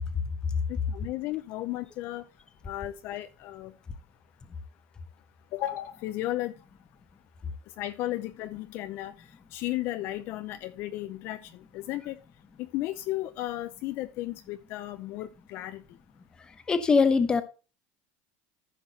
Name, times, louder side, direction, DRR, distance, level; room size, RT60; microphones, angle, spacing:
voice 1, 0.7-2.2 2.6-3.7 5.5-6.5 7.8-9.1 9.5-12.2 12.6-15.8, left 15 dB, 45° left, 0.5 m, -34 dB
voice 2, 16.7-17.4, left 5 dB, 15° left, 0.9 m, -21 dB
14.5 x 5.9 x 2.8 m
cardioid pair, 165°, 5 cm